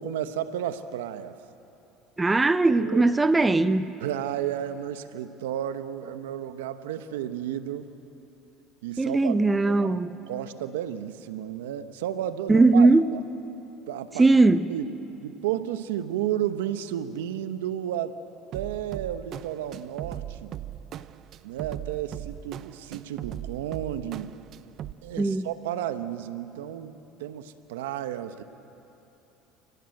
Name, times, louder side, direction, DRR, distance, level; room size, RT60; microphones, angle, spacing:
voice 1, 0.0-1.3 2.8-3.0 4.0-7.9 8.8-9.4 9.7-10.0 10.3-13.2 13.9-14.3 14.7-14.9 15.2-18.2 18.5-20.5 21.4-24.4 25.0-28.4, right 11 dB, 90° right, 1.0 m, -32 dB
voice 2, 2.2-4.0 9.0-10.1 12.5-13.1 14.2-14.7 25.2-25.5, right 3 dB, 15° right, 0.8 m, -20 dB
sound 1, 18.5-24.9, right 11 dB, 55° right, 0.7 m, -39 dB
29.5 x 18.0 x 7.8 m
supercardioid pair, 90°, 0 cm